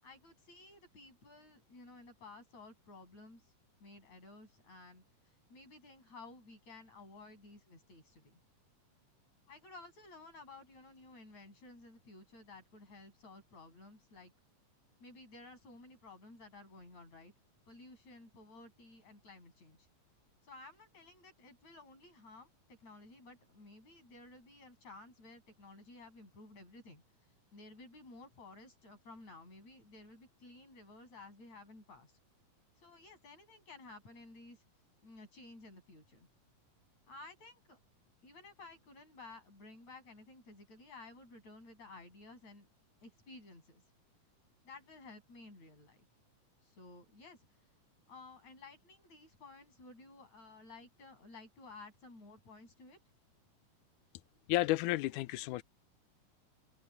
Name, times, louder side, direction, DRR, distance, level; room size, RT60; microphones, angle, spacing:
voice 1, 0.0-3.4 3.8-5.0 5.5-8.4 9.5-14.3 15.0-17.3 17.7-19.8 20.4-27.0 27.5-32.1 32.8-34.6 35.0-36.3 37.1-37.8 38.2-42.7 43.0-43.8 44.6-46.1 46.6-47.5 48.1-53.0, left 3 dB, 55° left, 8.9 m, -54 dB
voice 2, 54.5-55.6, left 17 dB, 80° left, 2.0 m, -32 dB
open air
omnidirectional pair, 3.7 m